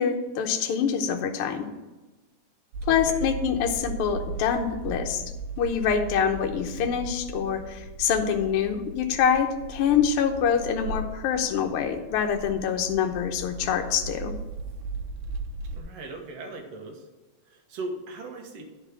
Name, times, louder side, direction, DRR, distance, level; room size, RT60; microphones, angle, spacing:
voice 1, 0.0-1.7 2.9-5.2 5.6-14.3, left 7 dB, 70° left, 4 dB, 1.4 m, -25 dB
Interior car moving on cobblestones, 2.7-15.8, right 2 dB, 90° right, 2.3 m, -37 dB
voice 2, 2.8-3.2 15.7-17.1 17.5-18.6, right 2 dB, 60° right, 2 dB, 2.2 m, -38 dB
10.5 x 5.0 x 5.9 m, 1.2 s
omnidirectional pair, 3.4 m